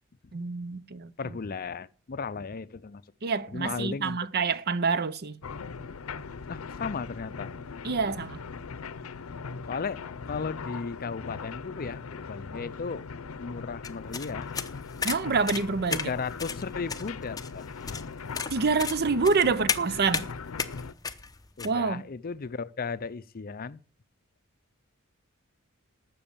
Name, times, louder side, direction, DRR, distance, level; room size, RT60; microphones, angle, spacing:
voice 1, 0.3-1.1 3.2-5.4 7.8-8.4 15.0-16.1 18.5-20.3 21.6-22.0, right 4 dB, 50° right, 0.6 m, -27 dB
voice 2, 1.2-3.0 3.5-4.2 6.5-7.5 9.7-10.0 10.3-13.1 13.4-14.5 15.9-17.6 21.6-23.8, left 5 dB, 45° left, 0.5 m, -35 dB
sound 1, 5.4-20.9, left 5 dB, 85° left, 0.6 m, -40 dB
sound 2, 13.8-21.7, left 5 dB, 20° left, 0.8 m, -34 dB
12.5 x 7.7 x 7.2 m
head